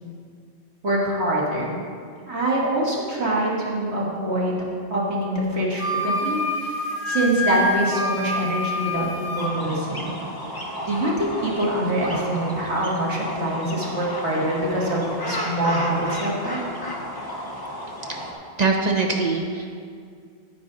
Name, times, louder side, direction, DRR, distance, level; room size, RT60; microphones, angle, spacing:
voice 1, 0.8-1.8 2.3-4.6 4.9-6.7 7.1-9.1 9.3-10.1 10.8-16.6, right 1 dB, 85° right, -5 dB, 2.3 m, -24 dB
Wind instrument woodwind instrument, 5.8-9.5, left 1 dB, 85° left, 1.2 m, -27 dB
sound 1, 9.4-18.3, equal, 20° left, 1.0 m, -33 dB
voice 2, 18.6-19.8, right 3 dB, 40° right, 1 dB, 0.9 m, -22 dB
10.0 x 9.8 x 4.0 m, 2.1 s
omnidirectional pair, 1.1 m